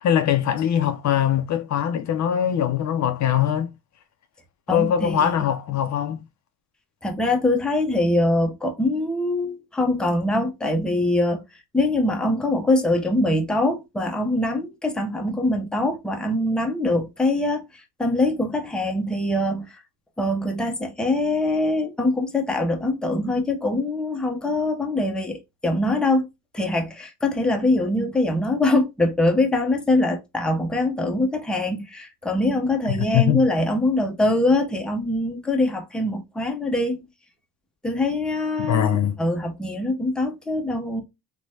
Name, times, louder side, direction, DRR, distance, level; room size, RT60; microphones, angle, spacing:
voice 1, 0.0-3.7 4.7-6.2 32.9-33.5 38.7-39.2, left 9 dB, 50° left, 0.5 m, -22 dB
voice 2, 4.7-5.4 7.0-11.4 11.7-19.8 20.2-26.3 26.5-37.1 37.8-41.0, left 2 dB, ahead, 0.6 m, -23 dB
3.0 x 2.2 x 2.6 m
cardioid pair, 95°, 37 cm